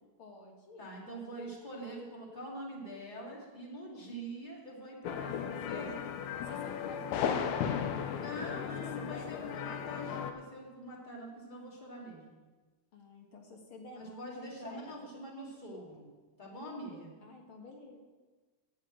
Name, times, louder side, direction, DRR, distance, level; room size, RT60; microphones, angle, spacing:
voice 1, 0.2-1.6 3.9-4.2 6.4-9.9 12.9-15.1 16.9-18.0, left 2 dB, 50° left, 1 dB, 2.1 m, -51 dB
voice 2, 0.8-5.9 8.1-12.4 14.0-16.1 16.4-17.1, right 1 dB, 15° left, -3 dB, 2.1 m, -44 dB
sound 1, 5.0-10.3, left 8 dB, 75° left, 2.0 m, -35 dB
9.3 x 6.5 x 8.6 m, 1.3 s
omnidirectional pair, 3.5 m